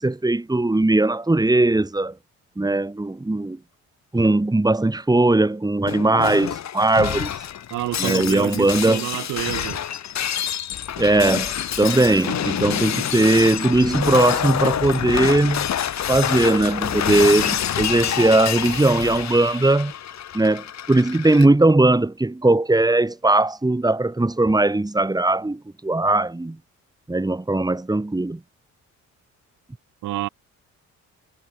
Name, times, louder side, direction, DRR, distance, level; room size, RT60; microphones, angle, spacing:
voice 1, 0.0-2.1 2.6-3.6 4.1-7.3 8.0-9.1 11.0-11.5 11.8-15.7 16.1-19.9 20.3-26.6 27.1-28.4, right 2 dB, 15° right, 4.3 m, -19 dB
Shatter, 5.9-21.5, left 10 dB, 65° left, 5.8 m, -27 dB
voice 2, 7.7-9.8 12.2-12.5 30.0-30.3, right 15 dB, 85° right, 3.7 m, -29 dB
cardioid pair, 90°, 30 cm